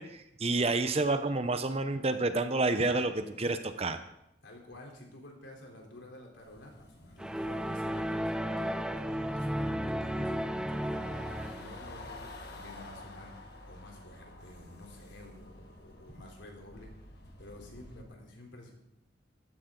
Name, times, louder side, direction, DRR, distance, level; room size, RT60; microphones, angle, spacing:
voice 1, 0.0-4.0, right 2 dB, 30° right, 9 dB, 0.8 m, -29 dB
voice 2, 4.4-18.7, left 1 dB, 70° left, 0 dB, 3.6 m, -50 dB
sound 1, 6.4-18.0, left 2 dB, 55° left, 1.8 m, -50 dB
sound 2, 7.2-11.8, equal, 5° right, 0.5 m, -33 dB
14.5 x 13.5 x 3.9 m, 0.83 s
head